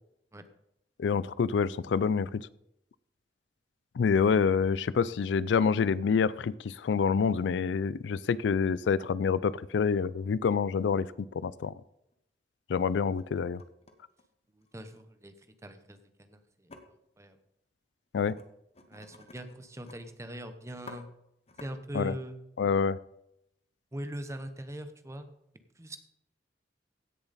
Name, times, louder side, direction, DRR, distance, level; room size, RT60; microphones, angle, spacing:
voice 1, 1.0-2.5 4.0-11.1 11.4-11.7 12.7-13.6 18.1-18.4 21.9-22.1 22.6-23.0, left 6 dB, 80° left, 19 dB, 0.4 m, -27 dB
sound 1, 12.1-12.2 12.9-13.2 13.6-15.0 16.7-16.8 18.2-18.4 18.7-20.0 20.3-20.4 20.7-21.0 21.5-21.7, left 2 dB, 35° left, 1.0 m, -51 dB
voice 2, 14.5-15.3 15.6-16.7 17.2-17.4 18.9-21.1 21.6-22.4 23.9-25.3 25.8-26.0, right 1 dB, 15° right, 9 dB, 0.9 m, -41 dB
16.0 x 6.9 x 4.1 m, 0.80 s
head